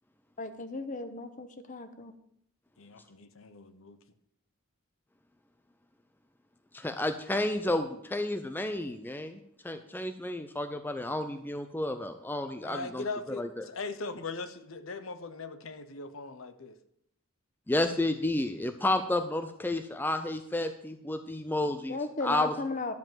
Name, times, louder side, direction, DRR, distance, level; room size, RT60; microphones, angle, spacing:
voice 1, 0.4-2.1 21.9-22.9, left 3 dB, 35° left, 9 dB, 0.9 m, -35 dB
voice 2, 2.8-4.0 12.6-16.8, left 3 dB, 70° left, 11 dB, 0.8 m, -40 dB
voice 3, 6.7-9.4 9.6-13.0 13.4-13.6 17.7-22.5, left 1 dB, 10° left, 8 dB, 0.4 m, -31 dB
12.0 x 5.2 x 7.3 m, 0.74 s
head